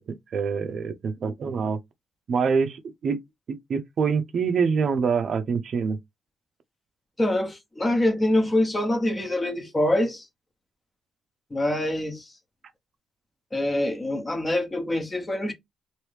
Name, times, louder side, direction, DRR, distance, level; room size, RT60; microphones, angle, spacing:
voice 1, 0.0-1.8 2.3-3.2 3.5-6.0, right 5 dB, 60° right, 0.5 m, -25 dB
voice 2, 7.2-10.2 11.5-12.3 13.5-15.5, left 1 dB, 25° left, 0.9 m, -25 dB
3.0 x 2.6 x 3.3 m
cardioid pair, 85°, 0 cm